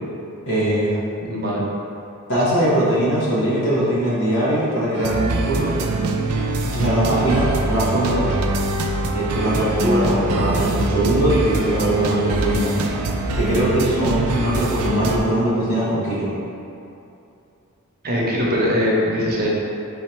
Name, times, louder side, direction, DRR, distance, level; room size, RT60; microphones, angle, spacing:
voice 1, 0.5-1.0 2.3-5.8 6.7-8.3 9.1-12.8 13.4-16.3, right 1 dB, 80° left, -9 dB, 1.2 m, -21 dB
voice 2, 1.2-1.6 18.0-19.5, equal, 45° right, -4 dB, 0.8 m, -21 dB
sound 1, 4.9-15.2, right 2 dB, 75° right, 0.4 m, -23 dB
4.1 x 2.7 x 4.5 m, 2.7 s
head